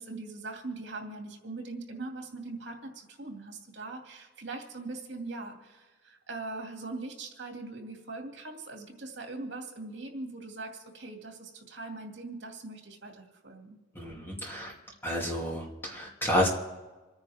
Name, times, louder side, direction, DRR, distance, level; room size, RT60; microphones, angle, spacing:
voice 1, 0.0-13.8, right 3 dB, 65° right, 2 dB, 2.6 m, -41 dB
voice 2, 13.9-14.7 15.0-16.5, left 1 dB, 10° left, -2 dB, 2.7 m, -30 dB
27.5 x 9.8 x 3.6 m, 1.2 s
head